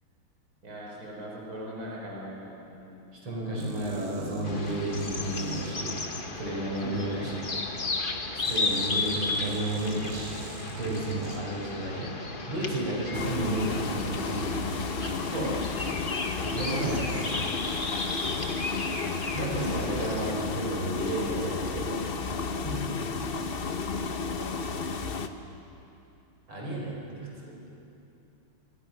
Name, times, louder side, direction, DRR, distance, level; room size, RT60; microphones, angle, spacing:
voice 1, 0.6-3.1 6.8-6.9 7.2-7.3 15.3-15.7 16.6-17.1 22.6-23.0, equal, 40° right, -3 dB, 4.7 m, -36 dB
voice 2, 3.2-5.9 6.4-7.5 8.3-10.3 10.8-12.1 12.5-14.6 16.4-17.1 19.3-22.0 26.5-27.6, right 1 dB, 90° right, -3 dB, 5.7 m, -32 dB
sound 1, 3.6-6.4 8.4-11.9, right 5 dB, 70° right, 2.5 m, -39 dB
sound 2, 4.4-20.3, left 3 dB, 30° left, 1.2 m, -34 dB
sound 3, 13.1-25.3, left 4 dB, 65° left, 0.5 m, -32 dB
26.5 x 22.0 x 6.1 m, 2.8 s
omnidirectional pair, 2.4 m